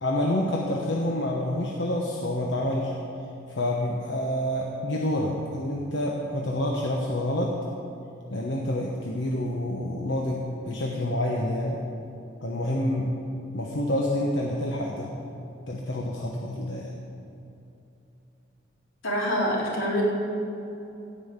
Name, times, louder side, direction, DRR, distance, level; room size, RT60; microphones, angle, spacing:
voice 1, 0.0-2.9 3.5-7.5 8.3-11.8 12.4-13.1 13.5-15.1 15.7-16.9, left 1 dB, 65° left, -2 dB, 1.1 m, -28 dB
voice 2, 19.0-20.0, equal, 90° left, -4 dB, 3.3 m, -26 dB
15.5 x 5.6 x 8.1 m, 2.8 s
head